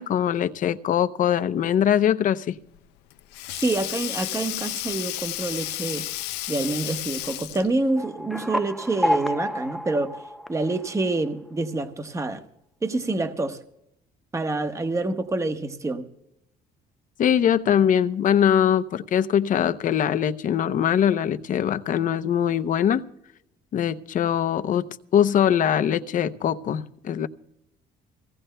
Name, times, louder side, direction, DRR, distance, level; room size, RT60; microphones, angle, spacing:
voice 1, 0.0-2.6 17.2-23.0 23.7-24.9 25.1-27.3, left 9 dB, 50° left, 0.7 m, -22 dB
Sink (filling or washing), 2.7-7.8, left 17 dB, 85° left, 0.5 m, -32 dB
voice 2, 3.6-6.0 6.5-10.1 10.5-12.4 12.8-13.6 14.3-16.1, right 2 dB, 20° right, 1.0 m, -27 dB
sound 1, 8.0-11.3, equal, ahead, 0.4 m, -29 dB
24.0 x 17.0 x 2.2 m
cardioid pair, 110°, 17 cm